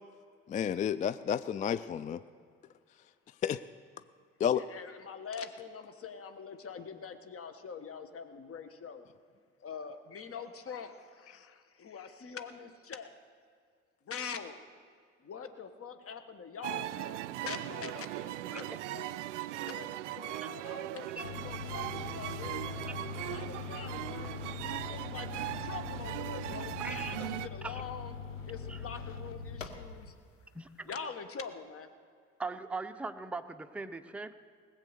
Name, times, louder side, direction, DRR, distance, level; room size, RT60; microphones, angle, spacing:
voice 1, 0.5-2.2 3.4-3.6 4.4-4.6, left 8 dB, 20° left, 15 dB, 0.3 m, -30 dB
voice 2, 4.5-9.1 9.6-13.1 14.0-14.6 15.2-19.2 19.6-22.7 23.2-28.1 28.5-30.1 30.8-31.9, left 6 dB, 35° left, 9 dB, 1.4 m, -44 dB
sound 1, 16.6-27.5, right 15 dB, 75° right, 0.5 m, -39 dB
sound 2, 21.2-30.2, left 6 dB, 90° left, 0.8 m, -42 dB
voice 3, 26.8-27.2 27.6-27.8 28.7-28.8 30.5-30.9 32.4-34.3, right 3 dB, 5° right, 8 dB, 0.7 m, -40 dB
19.5 x 7.7 x 6.7 m, 2.2 s
figure-of-eight pair, 55°, 37 cm